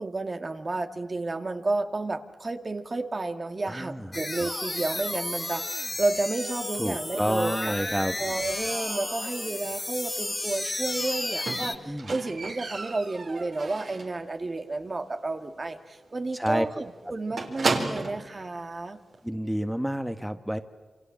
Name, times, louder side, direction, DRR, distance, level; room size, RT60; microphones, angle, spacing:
voice 1, 0.0-19.0, right 2 dB, 45° right, 6 dB, 2.1 m, -31 dB
voice 2, 3.6-4.1 6.8-8.1 11.9-12.1 16.3-16.6 19.2-20.6, equal, 5° right, 8 dB, 1.7 m, -29 dB
sound 1, 4.1-11.8, left 1 dB, 25° left, 1.7 m, -32 dB
Squeak, 11.5-14.2 14.6-15.0 15.2-15.3 15.7-15.8 16.1-16.2 16.5-18.3 19.1-19.2, right 3 dB, 70° right, 4.1 m, -33 dB
28.0 x 25.5 x 7.4 m, 1.3 s
cardioid pair, 40°, 0 cm